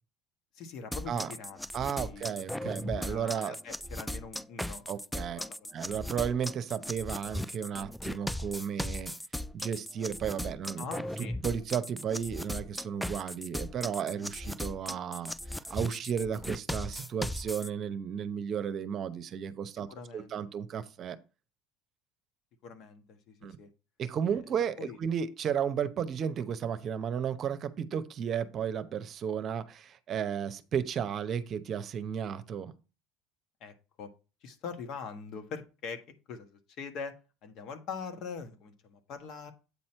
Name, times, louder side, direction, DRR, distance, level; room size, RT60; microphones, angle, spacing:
voice 1, 0.5-2.2 2.6-4.8 5.5-5.7 10.8-11.4 19.8-20.4 22.6-23.7 24.3-24.4 24.8-25.0 33.6-34.1 34.4-36.0 36.3-37.2 37.4-39.5, left 5 dB, 60° left, 1.3 m, -43 dB
sound 1, 0.9-17.7, left 1 dB, 5° left, 0.3 m, -38 dB
voice 2, 1.7-3.5 4.9-5.4 5.7-9.1 9.5-10.9 11.2-15.3 15.7-19.9 20.1-21.2 23.4-23.6 24.0-32.7, right 8 dB, 45° right, 0.8 m, -33 dB
8.4 x 4.3 x 4.4 m
hypercardioid pair, 80°, 0 cm